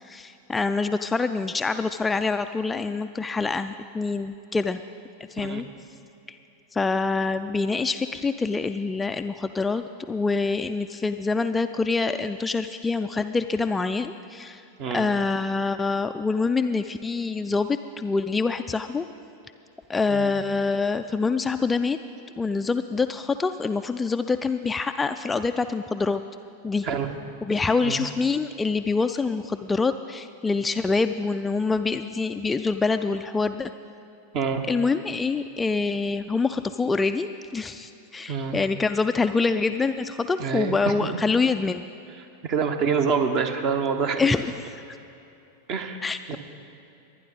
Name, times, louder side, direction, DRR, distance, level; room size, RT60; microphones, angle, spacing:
voice 1, 0.1-4.8 5.3-5.7 6.3-6.4 6.7-14.6 14.9-19.0 19.9-22.0 22.4-26.2 26.6-26.9 27.4-33.7 34.7-41.8 44.2-44.5 46.0-46.4, left 4 dB, 10° left, 8 dB, 0.3 m, -25 dB
voice 2, 27.5-28.0 34.3-34.6 38.3-38.6 40.4-41.2 42.4-44.3 45.7-46.0 46.3-46.4, right 6 dB, 40° right, 7 dB, 1.1 m, -26 dB
23.0 x 9.9 x 4.0 m, 2.7 s
figure-of-eight pair, 90°, 0 cm